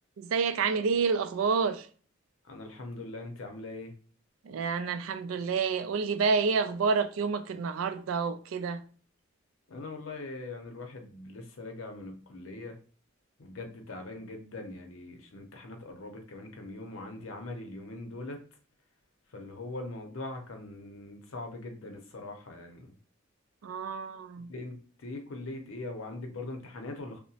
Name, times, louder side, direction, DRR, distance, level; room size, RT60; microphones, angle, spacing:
voice 1, 0.2-1.9 4.4-8.8 23.6-24.5, right 5 dB, 80° right, 0.3 m, -29 dB
voice 2, 2.5-3.9 9.7-12.8 13.4-18.4 19.3-22.9 24.5-27.2, left 2 dB, 75° left, 0.7 m, -41 dB
2.8 x 2.1 x 2.7 m
head